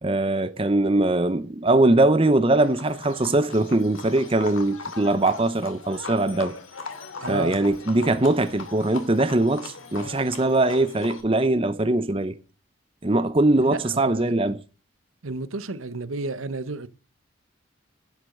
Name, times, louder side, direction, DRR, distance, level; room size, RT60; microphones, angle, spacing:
voice 1, 0.0-6.6 7.3-12.4 13.0-14.6, right 2 dB, 25° right, 0.7 m, -21 dB
Livestock farm animals working animals, 2.6-11.2, left 4 dB, 80° left, 2.5 m, -39 dB
voice 2, 7.2-7.6 7.9-8.1 13.6-14.5 15.2-16.9, right 3 dB, 85° right, 1.0 m, -32 dB
10.5 x 8.1 x 6.6 m
head